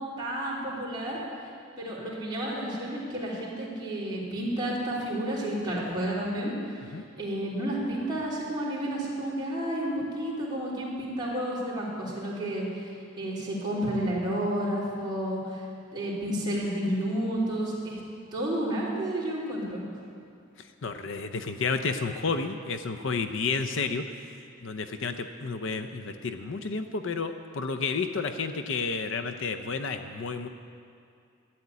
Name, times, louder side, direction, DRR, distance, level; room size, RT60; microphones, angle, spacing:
voice 1, 0.2-1.2 1.8-6.5 7.2-12.9 13.2-15.6 15.9-18.0 18.3-19.8, right 1 dB, 20° right, -7 dB, 3.4 m, -31 dB
voice 2, 20.6-24.1 24.6-30.5, left 4 dB, 60° left, 8 dB, 0.6 m, -31 dB
12.5 x 8.8 x 9.5 m, 2.4 s
head